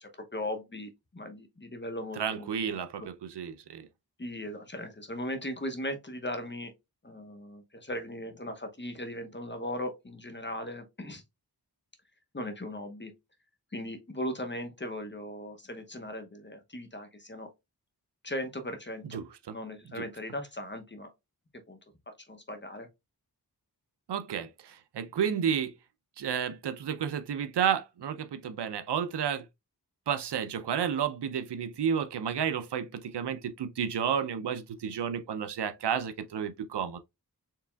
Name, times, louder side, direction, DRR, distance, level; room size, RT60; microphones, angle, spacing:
voice 1, 0.0-2.8 4.2-6.7 7.0-11.2 12.3-13.1 13.7-17.5 18.2-19.2 19.5-21.1 21.7-21.8 22.1-22.9, left 1 dB, 25° left, 0.9 m, -38 dB
voice 2, 2.2-3.9 19.0-19.5 19.9-20.1 24.1-25.8 26.2-29.5 30.1-37.0, right 8 dB, 80° right, 0.5 m, -31 dB
4.7 x 3.4 x 2.2 m
wide cardioid pair, 40°, 40 cm